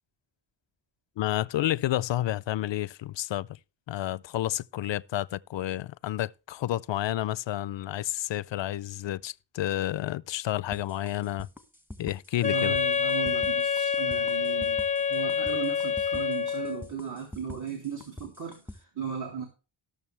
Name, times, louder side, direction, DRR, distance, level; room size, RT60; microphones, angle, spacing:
voice 1, 1.2-3.6 3.9-11.5 12.0-12.8, left 14 dB, 70° left, 0.5 m, -30 dB
sound 1, 10.7-18.8, left 1 dB, 5° right, 1.3 m, -44 dB
Wind instrument woodwind instrument, 12.4-16.9, left 6 dB, 15° left, 0.6 m, -27 dB
voice 2, 12.4-14.8 15.1-19.5, right 6 dB, 40° right, 2.4 m, -36 dB
18.0 x 6.8 x 3.3 m
cardioid pair, 70°, 46 cm